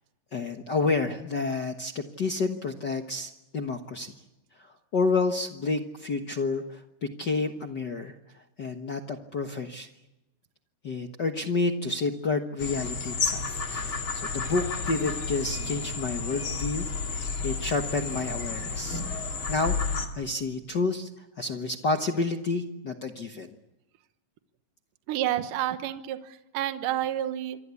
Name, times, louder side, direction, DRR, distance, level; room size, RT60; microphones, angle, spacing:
voice 1, 0.3-4.1 4.6-8.1 8.6-9.9 10.8-19.0 19.5-23.5, left 3 dB, 60° left, 5 dB, 1.1 m, -30 dB
sound 1, 12.6-20.1, left 4 dB, 40° left, 2.9 m, -31 dB
voice 2, 15.6-15.9 25.1-27.6, right 12 dB, 75° right, 10 dB, 2.6 m, -30 dB
27.0 x 24.0 x 8.4 m, 0.96 s
omnidirectional pair, 3.9 m